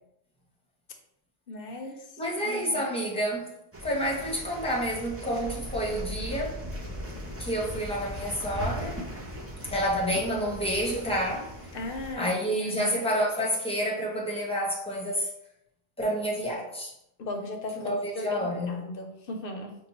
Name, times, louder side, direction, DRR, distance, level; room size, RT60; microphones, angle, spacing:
voice 1, 1.5-2.1 2.5-2.8 11.7-12.3 12.6-12.9 17.2-19.8, left 2 dB, 60° left, 4 dB, 0.8 m, -37 dB
voice 2, 2.2-3.5 3.8-6.6 7.4-9.0 9.7-11.5 12.1-15.3 16.0-16.9 17.7-18.8, equal, 5° left, -4 dB, 0.8 m, -29 dB
sound 1, 3.7-12.1, equal, 20° right, 0.4 m, -38 dB
5.4 x 2.2 x 2.9 m, 0.78 s
omnidirectional pair, 1.1 m